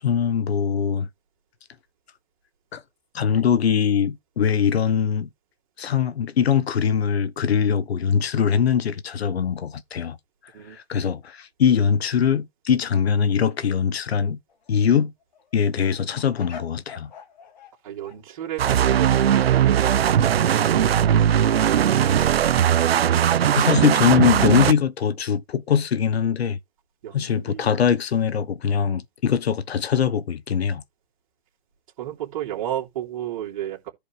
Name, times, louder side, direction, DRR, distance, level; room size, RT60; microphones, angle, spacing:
voice 1, 0.0-1.1 2.7-2.8 3.1-5.3 5.8-10.2 10.7-14.4 14.7-15.1 15.5-17.1 23.5-26.6 27.1-30.8, left 7 dB, 75° left, 1.1 m, -22 dB
sound 1, 14.5-14.7 15.2-17.8 18.0-18.2 21.5-23.9, left 6 dB, 45° left, 2.1 m, -45 dB
voice 2, 17.8-22.1 27.0-27.8 32.0-33.9, right 12 dB, 30° right, 3.0 m, -33 dB
sound 2, 18.6-24.7, right 10 dB, 70° right, 0.8 m, -19 dB
14.5 x 5.0 x 3.3 m
hypercardioid pair, 175°, 32 cm